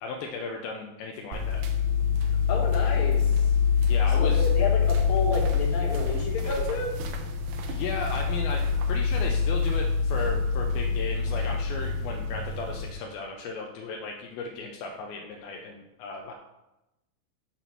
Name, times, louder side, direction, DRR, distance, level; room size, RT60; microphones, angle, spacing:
voice 1, 0.0-1.6 3.8-4.4 7.7-16.3, left 4 dB, 80° left, 2 dB, 2.3 m, -35 dB
sound 1, 1.3-12.9, left 6 dB, 80° right, 2.1 m, -25 dB
voice 2, 2.1-7.1, left 3 dB, 60° left, -3 dB, 2.5 m, -32 dB
6.8 x 4.2 x 6.0 m, 0.95 s
omnidirectional pair, 4.5 m